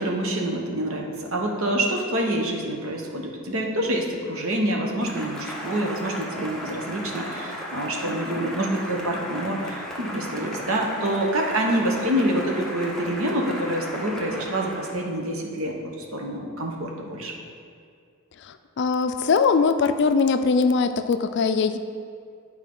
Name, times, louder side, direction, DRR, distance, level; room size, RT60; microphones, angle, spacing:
voice 1, 0.0-17.4, right 1 dB, 70° right, 1 dB, 1.0 m, -27 dB
Cheering / Applause, 5.0-15.1, equal, ahead, 0.8 m, -35 dB
voice 2, 18.4-21.8, left 5 dB, 55° left, 9 dB, 0.4 m, -21 dB
10.5 x 4.5 x 3.8 m, 2.3 s
head